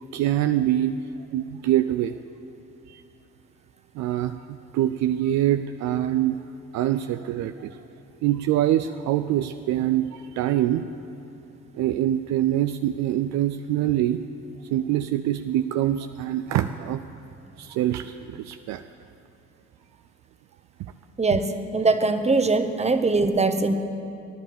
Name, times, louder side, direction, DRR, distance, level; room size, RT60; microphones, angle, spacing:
voice 1, 0.1-1.0 1.3-2.2 2.9-3.0 3.9-6.4 6.7-7.8 8.2-10.8 11.7-14.2 14.7-17.0 17.6-18.8, right 12 dB, 55° right, 9 dB, 0.5 m, -24 dB
voice 2, 21.2-23.7, right 3 dB, 20° right, 8 dB, 1.3 m, -22 dB
18.0 x 11.0 x 6.9 m, 2.6 s
figure-of-eight pair, 45°, 33 cm